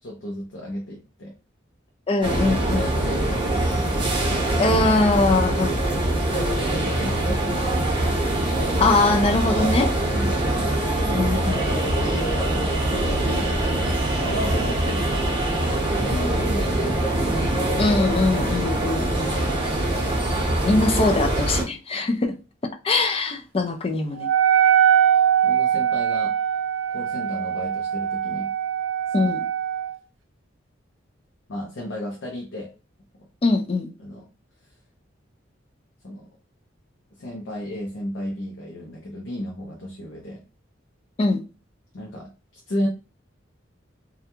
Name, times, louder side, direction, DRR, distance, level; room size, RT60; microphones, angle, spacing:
voice 1, 0.0-1.3 2.6-4.0 6.3-7.4 10.1-10.3 11.6-15.1 15.8-16.9 21.9-22.1 25.4-26.4 26.9-28.5 29.2-29.3 31.5-32.7 34.0-34.3 36.0-36.3 37.2-40.4 41.9-42.9, equal, 70° left, 0.6 m, -33 dB
voice 2, 2.1-2.8 4.6-5.8 8.8-9.9 11.1-11.7 17.8-19.0 20.6-22.3 22.8-24.3 29.1-29.4 33.4-33.9 41.2-41.4, left 3 dB, 30° left, 0.4 m, -22 dB
sound 1, 2.2-21.6, right 1 dB, 25° right, 0.8 m, -23 dB
Wind instrument woodwind instrument, 24.2-30.0, right 9 dB, 85° right, 0.4 m, -21 dB
2.3 x 2.2 x 2.9 m
head